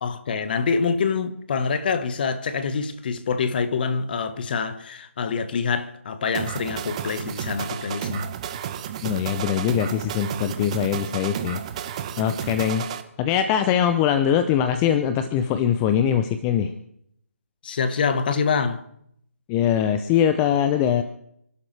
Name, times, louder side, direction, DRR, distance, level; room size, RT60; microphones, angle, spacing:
voice 1, 0.0-8.3 17.6-18.8, left 5 dB, 35° left, 1.3 m, -25 dB
sound 1, 6.3-13.0, right 10 dB, 25° right, 0.9 m, -32 dB
voice 2, 9.0-11.6 11.8-12.9 13.2-16.7 19.5-21.0, left 9 dB, 15° left, 0.6 m, -22 dB
28.5 x 12.0 x 3.3 m
figure-of-eight pair, 160°, 8 cm